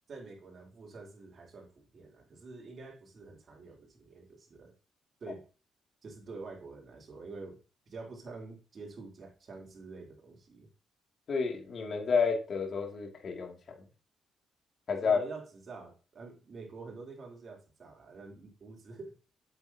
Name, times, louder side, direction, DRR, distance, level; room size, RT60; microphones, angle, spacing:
voice 1, 0.1-4.7 5.2-5.4 6.0-7.6 7.9-10.7 15.0-19.1, right 3 dB, 50° right, 1 dB, 3.4 m, -47 dB
voice 2, 11.3-13.8 14.9-15.2, left 5 dB, 50° left, 2 dB, 2.5 m, -30 dB
8.2 x 8.2 x 2.9 m, 0.34 s
cardioid pair, 90°, 0 cm